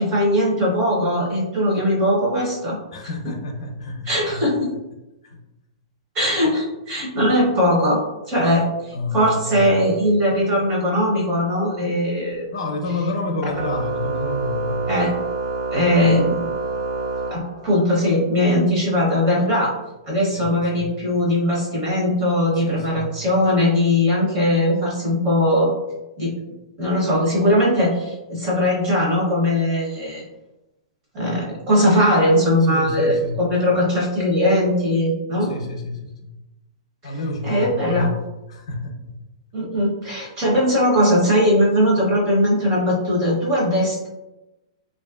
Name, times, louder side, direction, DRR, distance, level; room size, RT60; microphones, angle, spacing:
voice 1, 0.0-2.8 3.2-3.4 4.1-4.7 6.1-8.0 8.3-12.4 13.6-13.7 14.9-15.1 15.7-16.5 17.3-19.7 20.1-25.7 26.2-26.3 26.8-30.2 31.1-35.5 37.0-37.1 37.4-38.1 39.5-44.1, left 1 dB, 25° right, -4 dB, 0.8 m, -20 dB
voice 2, 2.9-4.4 8.9-9.8 12.5-14.9 20.3-20.9 22.6-23.1 32.7-33.4 35.4-36.3 37.0-38.2 38.5-39.1, left 2 dB, 70° left, 3 dB, 0.5 m, -29 dB
Organ, 13.5-18.0, right 3 dB, 80° right, 0.4 m, -27 dB
3.0 x 2.4 x 2.3 m, 0.99 s
hypercardioid pair, 175°, 3 cm